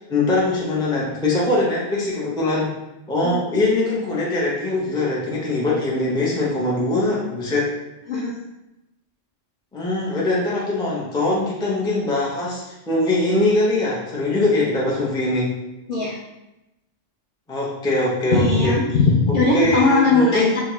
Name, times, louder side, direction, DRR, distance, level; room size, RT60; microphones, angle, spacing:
voice 1, 0.1-2.7 3.1-7.7 9.7-15.5 17.5-18.8 19.5-20.5, left 2 dB, 5° left, -5 dB, 0.3 m, -22 dB
voice 2, 18.3-20.6, left 3 dB, 60° left, -5 dB, 0.5 m, -19 dB
3.5 x 2.2 x 3.0 m, 0.94 s
omnidirectional pair, 1.3 m